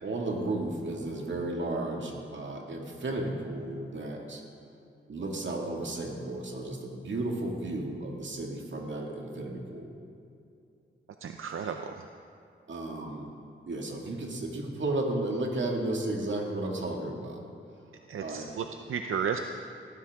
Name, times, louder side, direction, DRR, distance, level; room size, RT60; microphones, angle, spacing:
voice 1, 0.0-4.4 5.1-9.9 12.7-13.3 13.7-17.4 18.2-18.5, right 2 dB, 65° right, 0 dB, 2.2 m, -33 dB
voice 2, 11.2-12.1 18.1-19.4, right 7 dB, 90° right, 6 dB, 0.6 m, -33 dB
18.5 x 14.5 x 3.7 m, 2.5 s
wide cardioid pair, 95°, 21 cm